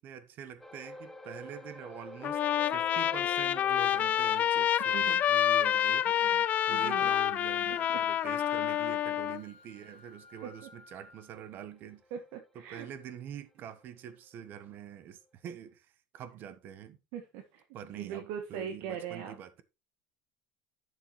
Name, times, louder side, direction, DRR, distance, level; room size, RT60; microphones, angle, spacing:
voice 1, 0.0-2.4 2.7-6.1 6.7-12.0 12.5-17.0 17.7-19.6, right 9 dB, 45° right, 1.2 m, -45 dB
sound 1, 0.6-13.3 13.6-13.8 14.4-14.5, left 1 dB, 5° left, 0.9 m, -53 dB
Trumpet, 2.2-9.4, left 10 dB, 35° left, 0.4 m, -28 dB
sound 2, 3.4-11.4, left 9 dB, 65° left, 1.7 m, -48 dB
voice 2, 4.9-5.2 6.1-6.4 6.7-7.1 7.9-8.0 10.4-10.7 12.1-12.9 17.1-17.6 17.9-19.4, right 8 dB, 65° right, 1.5 m, -41 dB
11.5 x 6.8 x 3.2 m
supercardioid pair, 135°, 5 cm